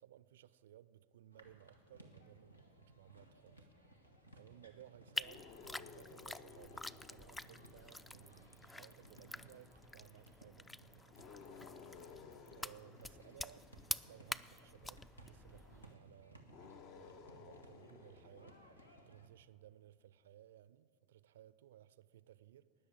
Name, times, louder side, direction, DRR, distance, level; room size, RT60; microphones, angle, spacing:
voice 1, 0.0-3.7 4.3-11.1 12.5-13.7 14.1-18.6 19.1-22.7, right 12 dB, 65° right, 0.4 m, -60 dB
sound 1, 1.3-19.3, right 1 dB, 90° left, 1.3 m, -62 dB
sound 2, 5.1-8.7 11.1-14.2 16.4-19.1, left 5 dB, 50° left, 0.8 m, -57 dB
sound 3, 5.1-15.9, left 2 dB, 10° left, 0.3 m, -48 dB
19.0 x 6.5 x 7.7 m
figure-of-eight pair, 85°, 0 cm